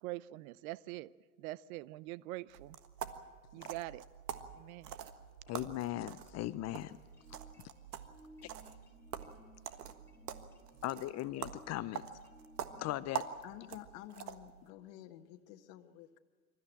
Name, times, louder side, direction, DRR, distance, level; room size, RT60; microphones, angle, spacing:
voice 1, 0.0-1.1 1.4-2.8 3.5-4.0 4.5-5.0, right 18 dB, 65° right, 20 dB, 0.7 m, -44 dB
sound 1, 2.5-14.6, right 9 dB, 80° right, 1.6 m, -46 dB
voice 2, 5.5-7.0 10.8-12.0 12.8-13.3, left 15 dB, 35° left, 15 dB, 0.6 m, -38 dB
sound 2, 6.6-13.2, equal, 5° left, 4.9 m, -61 dB
voice 3, 13.4-16.2, left 13 dB, 60° left, 6 dB, 1.4 m, -51 dB
26.5 x 14.0 x 8.9 m, 1.5 s
hypercardioid pair, 100°, 45 cm